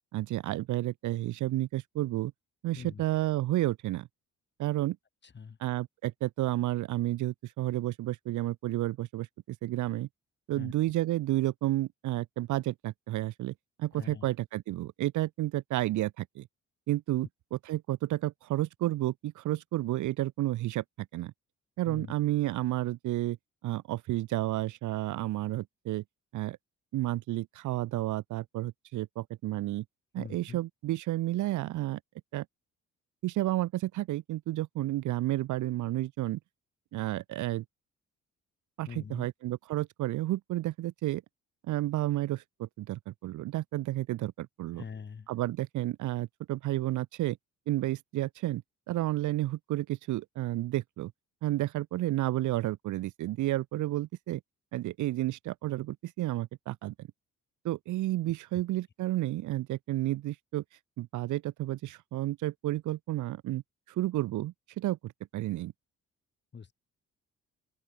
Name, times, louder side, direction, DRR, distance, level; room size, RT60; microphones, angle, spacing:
voice 1, 0.1-2.3 2.6-4.1 4.6-5.0 5.6-10.1 10.5-13.5 13.8-16.5 16.9-21.3 21.8-23.4 23.6-26.0 26.3-26.6 26.9-29.8 30.1-32.0 32.3-32.5 33.2-36.4 36.9-37.6 38.8-41.2 41.6-44.8 45.3-47.4 47.7-48.6 48.9-51.1 51.4-54.4 54.7-57.1 57.6-60.6 61.0-63.6 63.9-65.7, right 16 dB, 75° right, 0.8 m, -31 dB
voice 2, 5.2-5.6 10.6-10.7 13.9-14.3 21.9-22.1 30.2-30.6 38.9-39.3 44.7-45.3 66.5-66.7, left 6 dB, 35° left, 2.4 m, -43 dB
open air
cardioid pair, 90°, 30 cm